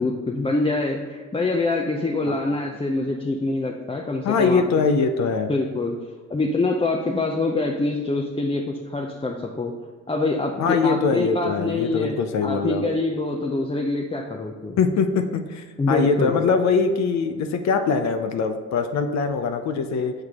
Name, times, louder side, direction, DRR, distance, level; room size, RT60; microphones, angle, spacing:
voice 1, 0.0-4.6 5.5-9.7 10.1-14.8 15.8-16.4, left 2 dB, 20° left, 0 dB, 0.6 m, -25 dB
voice 2, 4.2-5.5 10.6-12.8 14.8-20.1, left 5 dB, 65° left, 7 dB, 0.6 m, -22 dB
6.7 x 4.7 x 3.6 m, 1.5 s
cardioid pair, 90°, 30 cm